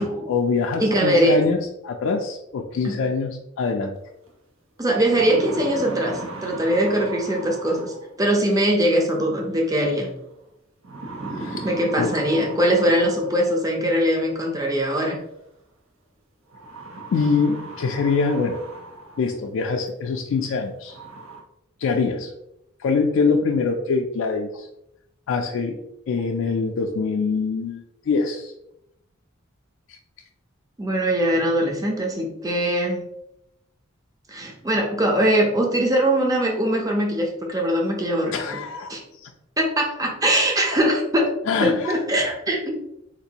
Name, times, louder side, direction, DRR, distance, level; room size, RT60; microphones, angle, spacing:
voice 1, 0.0-4.0 11.3-11.7 12.0-12.2 17.1-18.6 19.2-21.0 21.8-22.3 22.8-24.7 25.3-25.8 26.1-28.5 29.9-30.0 38.3-39.3 41.5-42.0, left 4 dB, 70° left, 2 dB, 0.3 m, -24 dB
voice 2, 0.8-1.4 2.8-3.0 4.8-10.1 11.6-15.2 30.8-33.0 34.3-38.6 38.9-39.0 39.6-41.3 41.6-42.7, right 1 dB, 20° right, 0 dB, 0.6 m, -21 dB
sound 1, 4.3-4.4 4.8-8.2 9.6-10.0 10.8-13.6 14.9-15.0 16.5-19.4 19.9-20.0 20.5-20.6 20.9-21.4, right 2 dB, 75° right, 0.7 m, -37 dB
3.9 x 2.6 x 2.8 m, 0.83 s
head